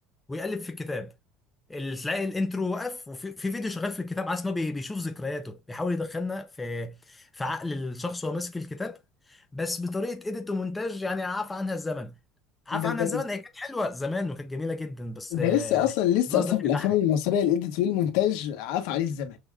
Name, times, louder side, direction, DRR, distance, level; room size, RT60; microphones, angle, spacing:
voice 1, 0.3-1.1 1.7-9.0 9.3-12.1 12.7-15.9 16.3-16.9, left 3 dB, 10° left, 0.4 m, -32 dB
voice 2, 12.7-13.2 15.3-19.4, left 11 dB, 70° left, 1.5 m, -25 dB
6.1 x 3.7 x 2.3 m
cardioid pair, 180°, 0 cm